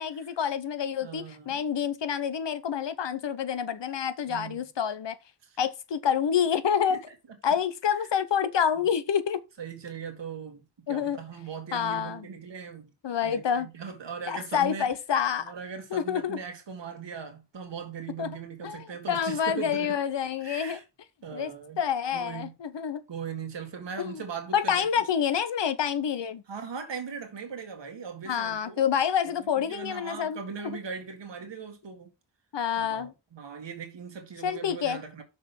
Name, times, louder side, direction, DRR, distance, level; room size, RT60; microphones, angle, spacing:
voice 1, 0.0-5.2 5.6-7.0 7.4-9.4 10.9-11.2 11.7-12.3 13.0-13.7 14.3-15.5 15.9-16.4 18.2-18.4 18.6-20.8 21.3-21.5 21.8-23.0 24.0-24.2 24.5-26.4 28.3-30.8 32.5-33.1 34.4-35.0, left 8 dB, 80° left, 1.0 m, -28 dB
voice 2, 1.0-1.6 4.2-4.6 5.4-5.6 6.9-7.0 7.9-8.1 8.8-8.9 9.6-12.9 13.2-14.9 15.4-20.0 20.4-20.8 21.2-21.8 22.1-22.5 23.1-24.9 26.5-28.8 29.4-32.1 32.8-35.2, right 6 dB, 85° right, 2.0 m, -39 dB
6.4 x 5.5 x 5.8 m
cardioid pair, 45°, 42 cm